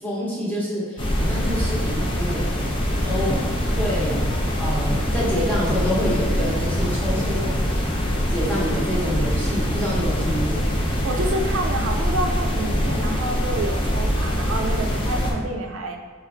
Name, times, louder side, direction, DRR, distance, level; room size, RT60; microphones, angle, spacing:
voice 1, 0.0-2.7 3.0-3.4 3.8-4.2 4.6-8.0 8.3-10.6, equal, 10° left, -6 dB, 0.8 m, -27 dB
sound 1, 1.0-15.3, equal, 25° left, 0.5 m, -23 dB
sound 2, 2.9-7.4 8.2-9.1, equal, 25° right, 0.8 m, -34 dB
voice 2, 11.0-16.0, right 1 dB, 85° right, 3 dB, 0.4 m, -28 dB
3.3 x 2.5 x 4.2 m, 1.5 s
head